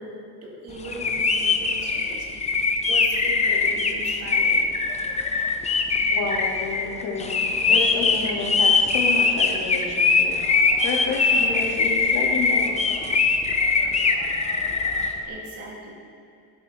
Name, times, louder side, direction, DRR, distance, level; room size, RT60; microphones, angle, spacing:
voice 1, 0.0-4.6 15.2-15.9, right 2 dB, 40° right, -2 dB, 2.3 m, -39 dB
sound 1, 0.8-15.1, left 4 dB, 20° left, 0.6 m, -22 dB
voice 2, 6.1-10.4 10.8-12.8, left 3 dB, 70° left, -3 dB, 2.8 m, -30 dB
12.0 x 12.0 x 3.7 m, 2.5 s
cardioid pair, 155°, 37 cm